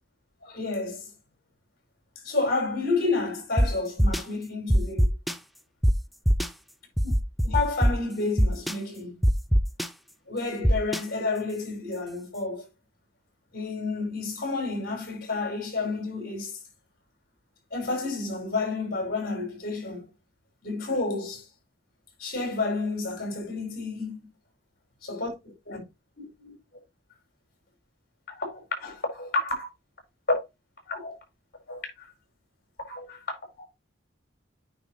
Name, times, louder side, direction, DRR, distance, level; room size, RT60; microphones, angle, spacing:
voice 1, 0.4-1.1 2.2-5.1 7.4-9.2 10.3-12.6 13.5-16.5 17.7-20.0 20.6-21.4 22.2-24.2 25.0-25.8 26.2-26.5 28.3-29.7 30.9-31.2 31.7-32.1 32.9-33.2 33.6-33.7, left 3 dB, 55° left, 5.1 m, -30 dB
sound 1, 3.6-3.7 4.0-4.2 4.7-5.3 5.8-5.9 6.3-6.5 7.0-7.9 8.4-8.7 9.2-9.9 10.6-11.0, equal, ahead, 0.5 m, -20 dB
9.3 x 5.2 x 3.0 m
head